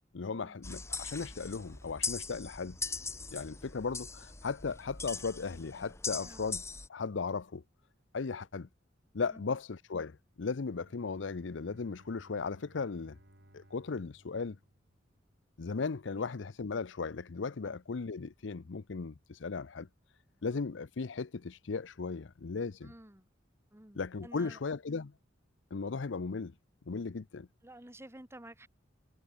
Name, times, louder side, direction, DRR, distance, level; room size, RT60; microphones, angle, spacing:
voice 1, 0.1-2.8 3.3-6.6 6.9-7.6 8.1-8.7 9.1-13.2 13.5-14.6 15.6-19.9 20.4-22.9 23.9-25.1 25.7-26.5 26.9-27.5, left 4 dB, 75° left, 0.6 m, -36 dB
sound 1, 0.6-6.9, left 4 dB, 15° left, 1.2 m, -40 dB
Bowed string instrument, 10.7-15.6, right 1 dB, 65° right, 4.1 m, -62 dB
voice 2, 22.8-23.3 23.7-24.6 27.6-28.7, right 1 dB, 15° right, 2.2 m, -52 dB
head